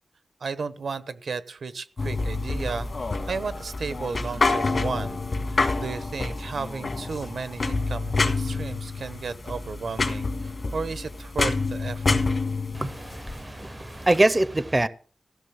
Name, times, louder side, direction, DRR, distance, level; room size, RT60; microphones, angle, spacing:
voice 1, 0.4-5.2 5.5-12.2, right 4 dB, 85° right, 0.9 m, -34 dB
sound 1, 2.0-14.2, left 3 dB, 50° left, 1.6 m, -28 dB
voice 2, 12.7-14.9, right 2 dB, 25° right, 0.6 m, -24 dB
15.5 x 6.6 x 7.1 m
wide cardioid pair, 125°, 0 cm